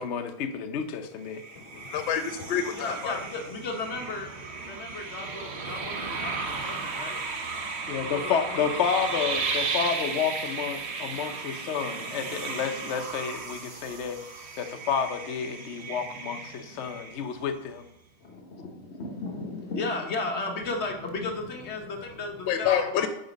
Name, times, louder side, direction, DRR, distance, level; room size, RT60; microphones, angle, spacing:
voice 1, 0.0-1.4 7.9-14.3 14.6-17.8, left 7 dB, 60° left, 6 dB, 0.7 m, -30 dB
sound 1, 1.3-17.5, right 4 dB, 55° right, 0.7 m, -35 dB
voice 2, 1.6-3.2 22.5-23.1, left 9 dB, 80° left, 8 dB, 1.4 m, -28 dB
voice 3, 2.8-4.3 4.7-7.2 8.1-8.7 18.2-23.1, left 3 dB, 40° left, 3 dB, 1.2 m, -34 dB
6.6 x 5.3 x 5.2 m, 0.83 s
omnidirectional pair, 2.1 m